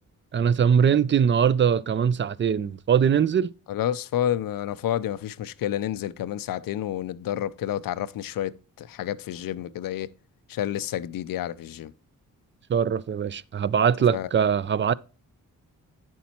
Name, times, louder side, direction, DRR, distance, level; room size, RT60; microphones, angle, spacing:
voice 1, 0.3-3.5 12.7-14.9, right 7 dB, 35° right, 0.4 m, -22 dB
voice 2, 3.7-10.1 10.5-11.9 14.1-14.3, left 11 dB, 80° left, 0.6 m, -29 dB
8.4 x 7.2 x 2.9 m
cardioid pair, 90°, 33 cm